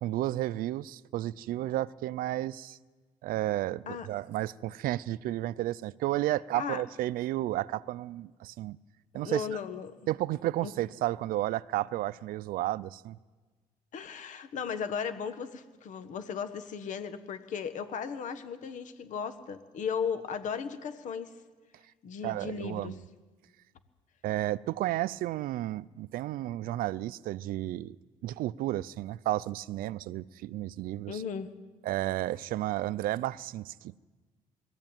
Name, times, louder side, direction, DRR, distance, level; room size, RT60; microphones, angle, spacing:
voice 1, 0.0-2.8 3.2-8.8 9.1-9.5 10.1-13.2 22.2-22.9 24.2-28.0 28.2-31.2 31.8-34.0, right 15 dB, 75° right, 0.5 m, -32 dB
voice 2, 9.2-10.0 10.6-10.7 13.9-21.4 22.0-23.0 31.1-31.5, left 6 dB, 60° left, 1.5 m, -36 dB
21.5 x 14.5 x 9.0 m
cardioid pair, 135°, 15 cm